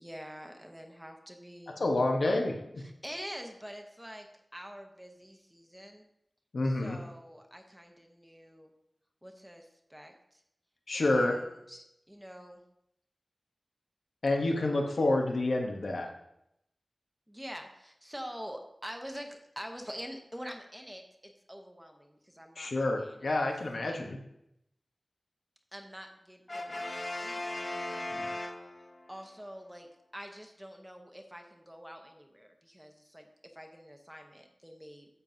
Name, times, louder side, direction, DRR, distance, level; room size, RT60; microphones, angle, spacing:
voice 1, 0.0-1.8 2.2-2.4 2.8-6.1 6.6-8.7 9.2-10.4 11.0-12.6 17.3-23.5 23.8-24.0 25.7-28.2 29.1-29.9 30.1-33.3 33.5-35.1, equal, 10° right, 3 dB, 0.9 m, -46 dB
voice 2, 1.7-2.5 6.5-7.0 10.9-11.3 14.2-16.1 22.6-24.2 28.1-28.3, left 2 dB, 80° left, 2 dB, 1.0 m, -28 dB
Brass instrument, 26.5-29.1, left 1 dB, 40° left, 0.9 m, -37 dB
9.8 x 7.3 x 2.7 m, 0.80 s
wide cardioid pair, 60°, 0 cm